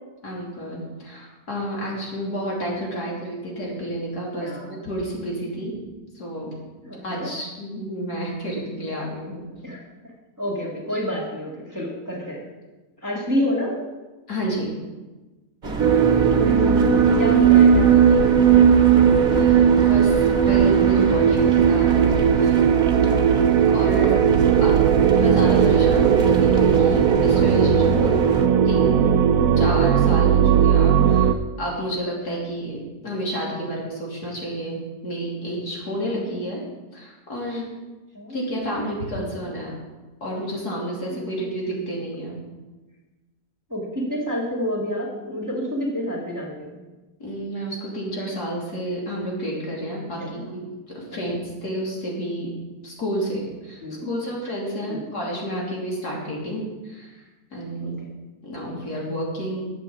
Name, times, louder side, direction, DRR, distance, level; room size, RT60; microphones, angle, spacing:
voice 1, 0.2-5.7 6.2-6.5 7.0-9.4 14.3-14.7 19.3-21.9 22.4-22.6 23.4-24.8 25.1-28.2 28.7-29.1 29.6-36.6 36.9-37.7 38.3-39.8 40.2-42.4 47.2-52.5 52.8-57.2 57.5-58.0 58.4-59.7, equal, 70° left, -3 dB, 3.6 m, -30 dB
voice 2, 4.3-4.8 6.8-7.3 9.6-9.8 10.4-12.5 13.0-13.8 15.9-16.8 17.2-18.6 22.9-24.8 36.2-36.3 38.1-38.4 41.1-41.5 43.7-46.8 50.1-50.4 51.1-51.2 53.8-54.1 54.9-55.0 57.8-58.2, equal, 10° right, -2 dB, 2.1 m, -30 dB
sound 1, 15.6-28.5, right 2 dB, 35° right, 1.3 m, -28 dB
sound 2, 15.8-31.3, right 8 dB, 65° right, 1.0 m, -17 dB
11.5 x 7.7 x 7.3 m, 1.2 s
omnidirectional pair, 1.7 m